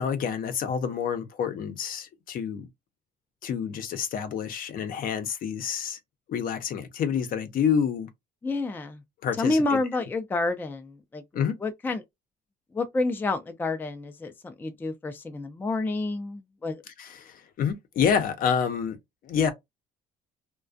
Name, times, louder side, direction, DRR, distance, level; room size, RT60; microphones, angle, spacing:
voice 1, 0.0-2.6 3.4-6.0 6.3-8.1 9.2-9.8 11.3-11.6 17.0-19.0 19.2-19.5, left 7 dB, 55° left, 0.6 m, -28 dB
voice 2, 8.4-9.0 9.4-12.0 12.7-16.8, left 2 dB, 10° left, 0.4 m, -29 dB
2.3 x 2.2 x 2.4 m
cardioid pair, 110°, 17 cm